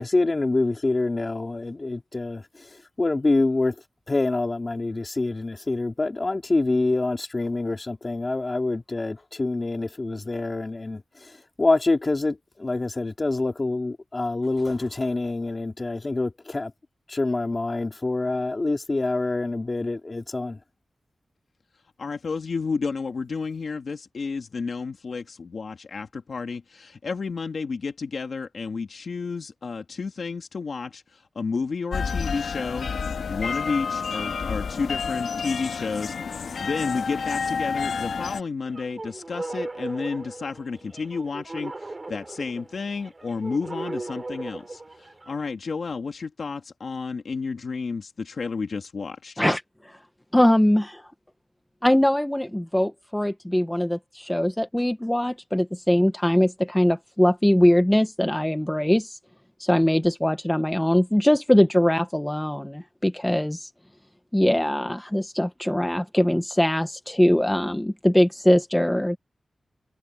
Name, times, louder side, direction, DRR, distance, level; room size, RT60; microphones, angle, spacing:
voice 1, 0.0-2.7 3.0-3.8 4.1-11.3 11.6-16.7 17.1-20.6, left 2 dB, 30° left, 3.7 m, -26 dB
voice 2, 22.0-32.9 33.3-49.4, left 4 dB, 60° left, 1.8 m, -31 dB
sound 1, 31.9-38.4, left 5 dB, 85° left, 1.9 m, -29 dB
sound 2, 38.7-45.5, right 2 dB, 30° right, 2.8 m, -37 dB
voice 3, 49.4-50.0 50.3-51.0 51.8-59.2 59.6-63.7 64.3-69.2, left 1 dB, 5° left, 0.9 m, -21 dB
wide cardioid pair, 130°, 0 cm